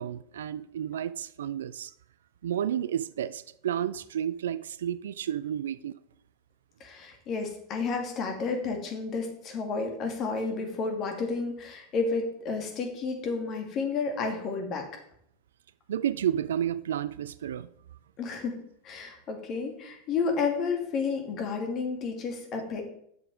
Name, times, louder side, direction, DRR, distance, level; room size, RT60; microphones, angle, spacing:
voice 1, 0.0-1.9 2.4-5.9 14.2-14.3 15.9-17.7, right 10 dB, 65° right, 0.3 m, -31 dB
voice 2, 6.8-14.9 18.2-18.6 18.8-22.8, left 4 dB, 40° left, 2.3 m, -31 dB
8.0 x 6.8 x 4.8 m
figure-of-eight pair, 85°, 0 cm